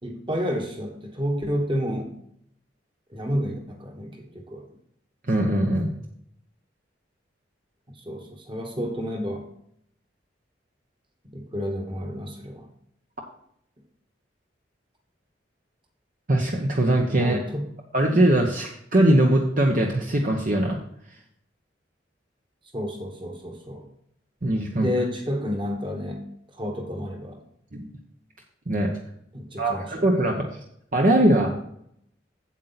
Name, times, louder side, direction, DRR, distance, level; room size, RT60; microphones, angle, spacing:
voice 1, 0.0-2.1 3.1-4.6 8.0-9.5 11.3-12.7 17.2-17.7 22.7-23.8 24.7-26.3 26.5-27.4 29.3-30.1, equal, 25° right, 3 dB, 1.5 m, -30 dB
voice 2, 5.3-5.9 16.3-17.4 17.9-20.8 24.4-24.9 27.7-27.9 28.7-29.0 29.6-30.5 30.9-31.5, right 1 dB, 45° right, 1 dB, 0.9 m, -21 dB
8.4 x 7.9 x 4.1 m, 0.71 s
head